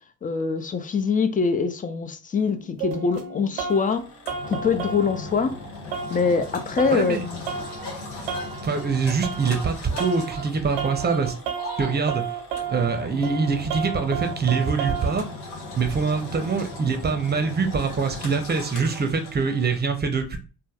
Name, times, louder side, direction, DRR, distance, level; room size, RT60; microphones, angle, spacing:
voice 1, 0.2-4.1 4.5-5.6 6.1-7.4, left 5 dB, 20° left, 0.4 m, -24 dB
sound 1, 2.4-3.9 4.3-5.6 5.9-9.7 10.0-10.4 10.8-15.1, right 7 dB, 80° right, 0.7 m, -33 dB
Engine, 3.7-19.8, left 2 dB, 80° left, 0.9 m, -39 dB
voice 2, 6.9-7.2 8.6-11.3 11.8-12.2 12.7-15.3 15.7-20.4, right 5 dB, 20° right, 0.7 m, -24 dB
Female speech woman speaking / Yell, 7.7-9.0 9.5-12.1, left 2 dB, 60° left, 1.2 m, -40 dB
3.2 x 2.2 x 2.3 m
hypercardioid pair, 45°, 45 cm